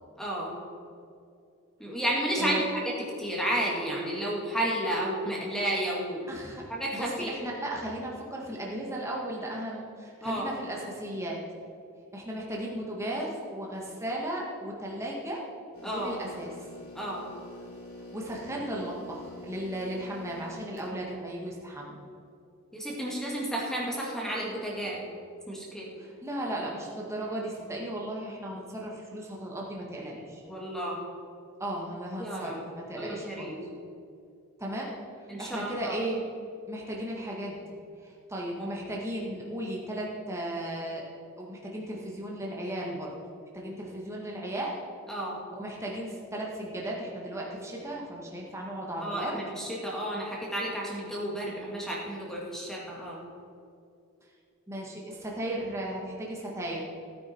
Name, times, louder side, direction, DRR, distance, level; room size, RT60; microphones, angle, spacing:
voice 1, 0.2-0.5 1.8-2.6 3.2-6.3 6.7-7.3 10.2-10.5 15.8-16.2 16.9-17.3 22.7-25.0 25.5-25.9 30.5-31.0 32.2-32.6 33.0-33.6 35.3-36.0 38.6-38.7 45.1-45.4 49.0-53.3, right 1 dB, ahead, -4 dB, 2.2 m, -32 dB
voice 2, 6.3-6.6 6.9-11.4 12.1-15.4 15.9-16.5 18.1-22.0 26.0-30.4 31.6-33.5 34.6-34.9 35.4-36.2 36.7-37.6 38.0-41.0 41.4-43.1 43.5-44.8 45.5-49.4 54.7-56.9, right 1 dB, 15° right, -3 dB, 1.7 m, -35 dB
sound 1, 15.7-20.9, left 1 dB, 75° left, 3.6 m, -46 dB
16.0 x 9.5 x 4.6 m, 2.5 s
head